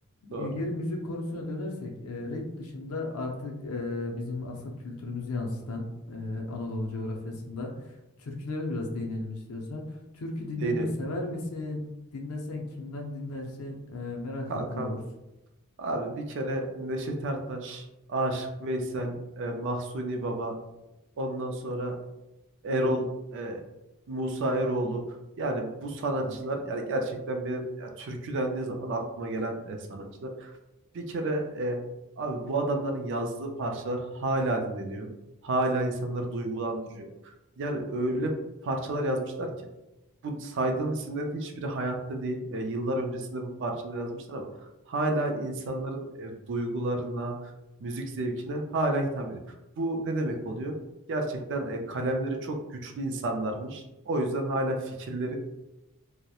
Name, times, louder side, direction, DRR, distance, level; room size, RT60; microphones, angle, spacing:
voice 1, 0.2-11.8 12.1-15.0 26.2-26.4, left 2 dB, 70° left, 1 dB, 0.5 m, -35 dB
voice 2, 14.5-15.0 15.8-20.6 21.2-22.0 22.6-23.1 23.3-23.6 24.1-25.0 25.4-30.5 30.9-31.8 32.2-35.1 35.4-37.1 37.6-38.3 38.6-39.5 40.2-44.5 44.9-47.5 47.8-49.4 49.8-50.8 51.1-55.4, right 1 dB, 55° right, 3 dB, 0.4 m, -31 dB
2.8 x 2.0 x 2.3 m, 0.97 s
head